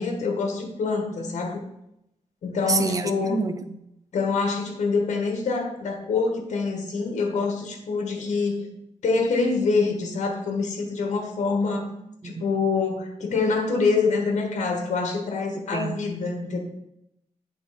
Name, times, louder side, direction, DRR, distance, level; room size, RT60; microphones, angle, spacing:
voice 1, 0.0-1.6 2.4-3.4 4.1-8.6 9.0-11.9 12.2-16.6, left 4 dB, 70° left, 2 dB, 1.6 m, -25 dB
voice 2, 2.7-3.8 12.2-12.4 15.5-16.0, right 4 dB, 30° right, 10 dB, 0.6 m, -28 dB
9.2 x 4.1 x 4.3 m, 0.81 s
wide cardioid pair, 130°, 13 cm